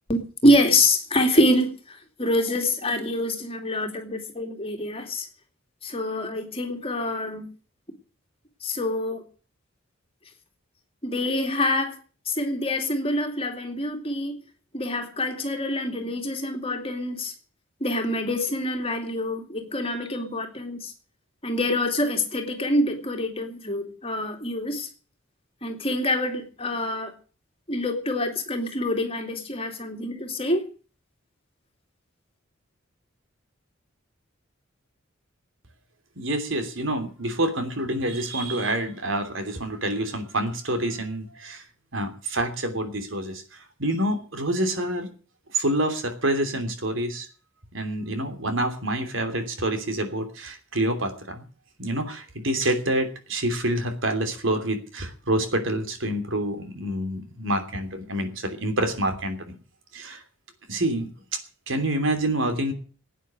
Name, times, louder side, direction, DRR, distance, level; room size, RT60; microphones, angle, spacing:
voice 1, 0.1-5.3 5.8-7.5 8.6-9.2 11.0-12.0 12.3-14.4 14.7-17.3 17.8-20.9 21.4-24.9 25.6-27.1 27.7-30.7, left 1 dB, 30° left, 5 dB, 2.4 m, -26 dB
voice 2, 36.2-41.6 41.9-43.4 43.8-45.1 45.5-47.3 47.7-51.4 51.8-59.5 59.9-60.2 60.7-61.4 61.7-62.7, right 1 dB, 70° right, 7 dB, 3.1 m, -27 dB
17.0 x 9.2 x 7.7 m, 0.39 s
head